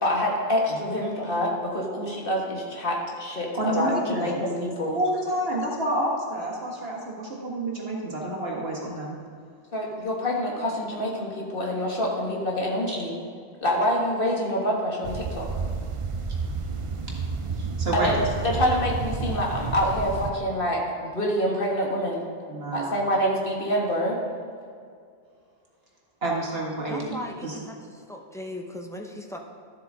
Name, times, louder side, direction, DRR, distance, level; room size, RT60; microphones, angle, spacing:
voice 1, 0.0-5.0 9.7-13.1 13.6-15.5 17.9-22.3 22.7-24.2, equal, 55° left, -2 dB, 1.8 m, -26 dB
voice 2, 3.5-4.5 4.9-9.2 12.9-13.0 17.5-18.2 22.5-23.0 26.2-27.6, right 1 dB, 65° right, -3 dB, 2.0 m, -29 dB
sound 1, 15.0-20.3, right 4 dB, 40° right, 0.5 m, -30 dB
voice 3, 26.9-27.7 28.1-29.4, left 1 dB, 5° left, 1 dB, 0.7 m, -37 dB
12.5 x 7.9 x 3.7 m, 2.2 s
omnidirectional pair, 1.1 m